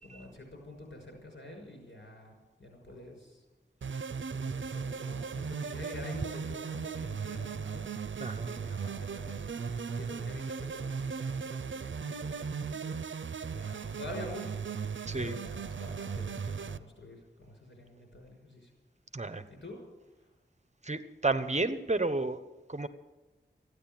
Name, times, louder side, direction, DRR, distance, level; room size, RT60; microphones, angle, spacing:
voice 1, 0.0-3.4 4.3-7.9 8.5-13.0 13.4-14.7 15.1-18.7 19.5-19.8 20.1-20.3, left 1 dB, 80° left, 1 dB, 5.8 m, -47 dB
sound 1, 3.8-16.8, right 6 dB, 90° right, 0.6 m, -37 dB
voice 2, 8.2-8.6 15.1-15.4 19.1-19.4 20.8-22.4 22.7-22.9, right 3 dB, 35° right, 11 dB, 1.1 m, -31 dB
15.0 x 10.0 x 9.0 m, 1.1 s
wide cardioid pair, 45°, 19 cm